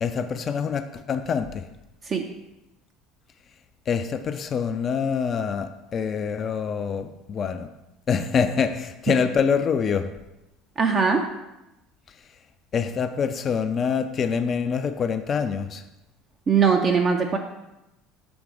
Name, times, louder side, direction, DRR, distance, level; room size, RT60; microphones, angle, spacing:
voice 1, 0.0-1.7 3.9-7.7 8.1-10.1 12.7-15.8, left 6 dB, 35° left, 8 dB, 0.3 m, -25 dB
voice 2, 10.8-11.3 16.5-17.4, right 5 dB, 35° right, 3 dB, 0.5 m, -20 dB
6.1 x 3.3 x 4.9 m, 0.94 s
figure-of-eight pair, 65°, 0 cm